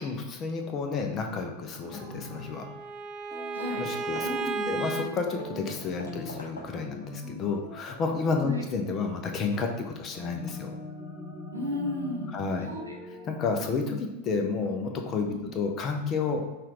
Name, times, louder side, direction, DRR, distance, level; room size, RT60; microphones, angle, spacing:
voice 1, 0.0-2.6 3.7-4.3 4.7-10.8 12.3-12.7 13.2-16.4, left 4 dB, 30° left, 4 dB, 0.6 m, -31 dB
sound 1, 1.8-2.6 3.3-6.4 6.7-7.9 10.1-12.4 12.7-13.4, left 2 dB, 10° left, 1.4 m, -41 dB
Bowed string instrument, 2.0-5.1, right 3 dB, 30° right, 0.4 m, -34 dB
Hammer / Wood, 3.2-3.3 3.6-3.8 4.2-7.0 7.5-8.5, left 1 dB, 70° left, 0.7 m, -47 dB
voice 2, 3.5-3.8 4.2-4.7 8.4-8.6 11.5-12.9 15.3-15.5, left 1 dB, 80° right, -1 dB, 0.9 m, -34 dB
5.6 x 2.5 x 3.1 m, 1.1 s
figure-of-eight pair, 90°, 0 cm